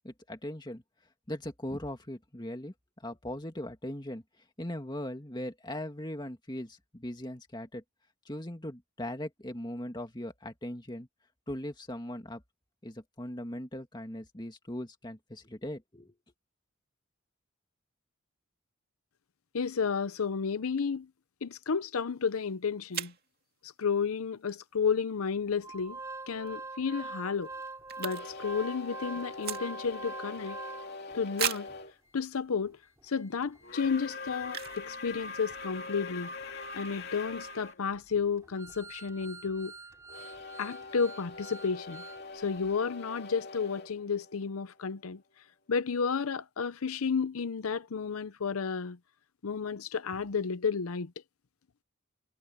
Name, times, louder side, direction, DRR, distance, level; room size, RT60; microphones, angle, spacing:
voice 1, 0.0-0.8 1.3-2.7 3.0-4.2 4.6-7.8 8.3-11.1 11.5-12.4 12.8-16.1, left 1 dB, 20° left, 2.3 m, -39 dB
voice 2, 19.5-21.1 21.4-23.1 23.6-26.0 26.3-27.5 28.0-30.6 31.1-31.7 32.1-36.3 36.7-39.7 40.6-42.0 42.3-45.2 45.7-49.0 49.4-51.1, left 5 dB, 90° left, 0.7 m, -32 dB
sound 1, 22.3-22.4 22.9-23.3 26.2-26.5 26.8-26.9 27.1-28.5 28.8-30.0 30.5-30.6 31.3-31.8 32.5-32.6 33.1-33.3 34.4-34.9 35.2-35.3 35.4-35.8, right 9 dB, 45° right, 2.5 m, -36 dB
Organ, 25.6-31.2 31.7-31.8 32.0-32.2 32.6-42.2 42.6-42.7, right 3 dB, 15° right, 4.2 m, -46 dB
sound 2, 28.1-31.9 33.6-37.8 40.1-44.9, left 4 dB, 50° left, 2.7 m, -43 dB
head